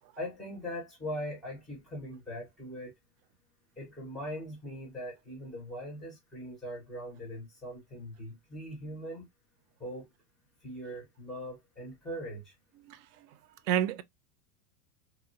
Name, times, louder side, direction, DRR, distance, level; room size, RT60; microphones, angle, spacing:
voice 1, 0.2-2.9 3.8-9.3 9.8-10.1 10.6-12.5, equal, ahead, 0.3 m, -41 dB
voice 2, 12.8-13.3 13.7-14.0, right 10 dB, 80° right, 0.6 m, -30 dB
3.0 x 2.0 x 2.6 m
supercardioid pair, 165°, 47 cm